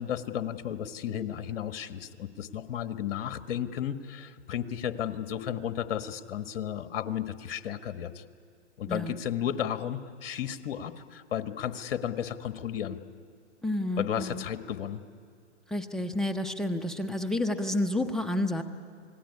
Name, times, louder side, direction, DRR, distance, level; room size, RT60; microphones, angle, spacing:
voice 1, 0.0-8.2 8.8-13.0 14.0-15.0, left 9 dB, 55° left, 11 dB, 1.6 m, -33 dB
voice 2, 13.6-14.4 15.7-18.6, left 1 dB, ahead, 4 dB, 0.8 m, -30 dB
28.0 x 19.0 x 9.9 m, 2.4 s
hypercardioid pair, 135°, 36 cm